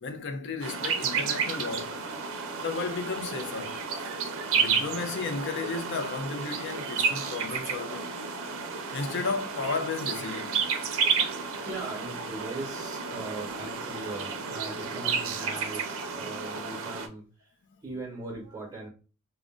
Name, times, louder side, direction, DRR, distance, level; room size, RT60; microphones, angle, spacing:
voice 1, 0.0-1.9 2.6-3.8 4.6-8.1 8.9-10.6, left 4 dB, 55° left, 0.5 m, -33 dB
sound 1, 0.6-17.1, right 6 dB, 65° right, 0.5 m, -31 dB
voice 2, 11.0-17.5 17.8-18.9, right 2 dB, 15° right, 0.9 m, -40 dB
2.4 x 2.1 x 3.6 m
head